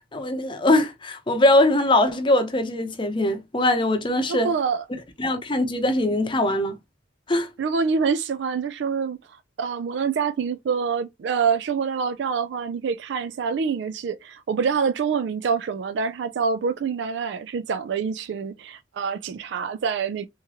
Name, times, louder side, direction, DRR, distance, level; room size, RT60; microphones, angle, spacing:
voice 1, 0.1-4.5 5.2-6.7 7.3-7.5, left 1 dB, 25° left, 0.7 m, -21 dB
voice 2, 4.3-4.8 7.6-20.3, right 6 dB, 65° right, 0.3 m, -26 dB
3.5 x 3.0 x 2.8 m
head